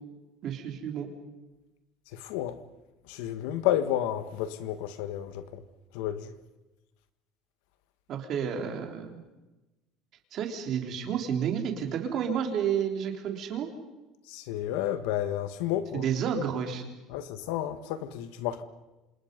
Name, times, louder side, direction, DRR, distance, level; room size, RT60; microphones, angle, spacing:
voice 1, 0.4-1.1 8.1-9.1 10.3-13.7 15.9-16.8, right 8 dB, 40° right, 3.7 m, -30 dB
voice 2, 2.1-2.6 3.1-5.6 5.9-6.3 14.3-16.1 17.1-18.6, left 11 dB, 85° left, 1.9 m, -31 dB
28.5 x 27.0 x 5.4 m
cardioid pair, 175°, 0 cm